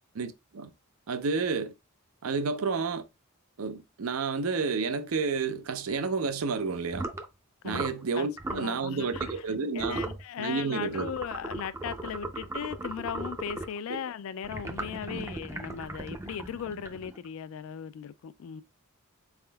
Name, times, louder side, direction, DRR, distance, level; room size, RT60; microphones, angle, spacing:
voice 1, 0.1-0.7 1.1-1.7 2.2-3.0 3.6-7.1 7.6-10.0 10.4-11.2 13.9-14.0 15.1-15.3, right 4 dB, 75° right, 0.5 m, -30 dB
sound 1, 6.9-7.2 7.7-8.0 8.4-8.7 9.1-9.5 9.8-10.2 10.9-13.8 14.4-17.3, right 2 dB, 15° right, 0.4 m, -37 dB
voice 2, 8.2-9.3 9.7-18.6, left 8 dB, 65° left, 0.3 m, -37 dB
4.1 x 3.5 x 2.2 m
head